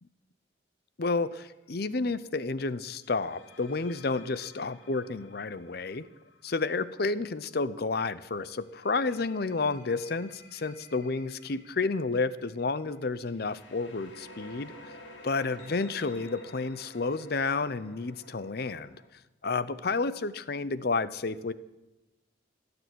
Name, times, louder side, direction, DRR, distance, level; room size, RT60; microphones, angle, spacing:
voice 1, 1.0-6.1 6.4-14.7 15.2-18.9 19.4-21.5, left 3 dB, 55° left, 15 dB, 0.6 m, -31 dB
sound 1, 1.2-1.5 3.0-7.8 8.6-19.1, left 2 dB, 80° left, 2.3 m, -52 dB
17.0 x 6.9 x 9.9 m, 1.0 s
head